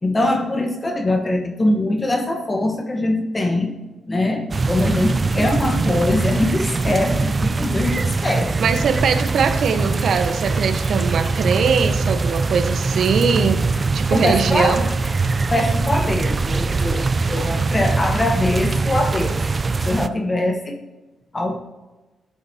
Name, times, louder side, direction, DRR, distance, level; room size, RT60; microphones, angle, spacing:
voice 1, 0.0-3.8 4.1-8.5 14.1-14.8 15.5-19.5 19.8-20.8 21.3-21.6, left 1 dB, 25° left, 4 dB, 1.2 m, -22 dB
sound 1, 4.5-20.1, right 3 dB, 35° right, 0.4 m, -22 dB
voice 2, 8.6-13.6 13.9-14.9, right 6 dB, 70° right, 7 dB, 1.1 m, -21 dB
14.5 x 10.0 x 2.8 m, 1.2 s
cardioid pair, 80°, 0 cm